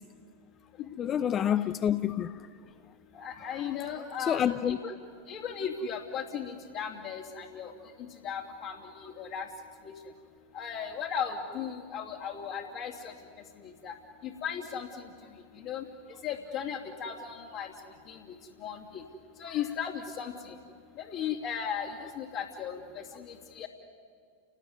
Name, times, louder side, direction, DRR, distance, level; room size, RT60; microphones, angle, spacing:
voice 1, 1.0-2.4 3.4-3.5 4.3-4.8, left 9 dB, 35° left, 0.8 m, -28 dB
voice 2, 3.2-4.9 5.3-7.7 8.2-9.5 9.8-9.9 10.5-13.1 13.6-13.9 14.2-14.9 15.6-15.8 16.2-17.7 18.1-18.2 18.6-19.0 19.4-20.5 21.0-22.8 23.2-23.7, left 7 dB, 50° left, 2.9 m, -36 dB
30.0 x 18.5 x 9.7 m
hypercardioid pair, 95°, 0 cm